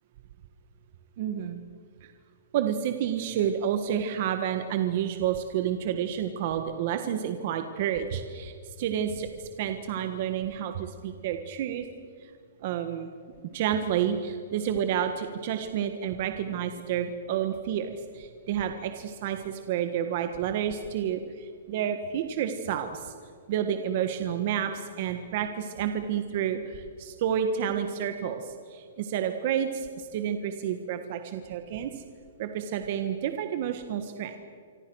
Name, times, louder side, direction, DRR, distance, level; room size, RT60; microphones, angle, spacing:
voice 1, 1.2-1.6 2.0-2.1 2.5-9.3 9.6-11.9 12.6-13.1 13.5-23.1 23.5-32.0 32.4-34.4, right 9 dB, 35° right, 7 dB, 1.5 m, -30 dB
27.5 x 25.5 x 6.4 m, 2.1 s
hypercardioid pair, 170°, 0 cm